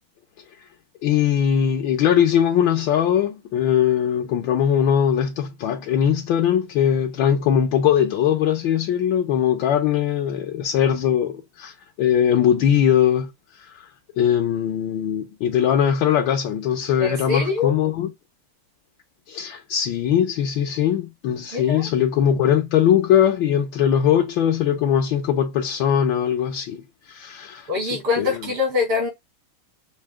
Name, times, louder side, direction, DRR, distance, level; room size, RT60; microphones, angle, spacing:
voice 1, 1.0-13.3 13.6-13.9 14.2-18.1 19.3-27.7 28.2-28.4, left 9 dB, 70° left, 1.3 m, -20 dB
voice 2, 17.0-17.7 21.5-21.8 27.7-29.1, left 5 dB, 75° right, 3.4 m, -24 dB
5.6 x 2.7 x 3.5 m
omnidirectional pair, 2.4 m